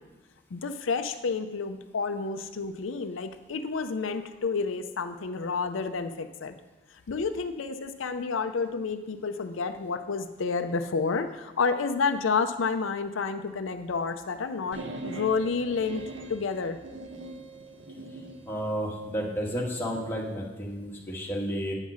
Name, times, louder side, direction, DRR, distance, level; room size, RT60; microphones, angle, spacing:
voice 1, 0.5-6.6 7.1-16.0 16.3-16.8, left 4 dB, 85° left, 8 dB, 0.5 m, -30 dB
sound 1, 14.7-18.5, right 2 dB, 65° right, 0.8 m, -41 dB
voice 2, 18.5-21.7, equal, 10° left, -3 dB, 1.4 m, -32 dB
8.9 x 5.5 x 6.2 m, 1.1 s
head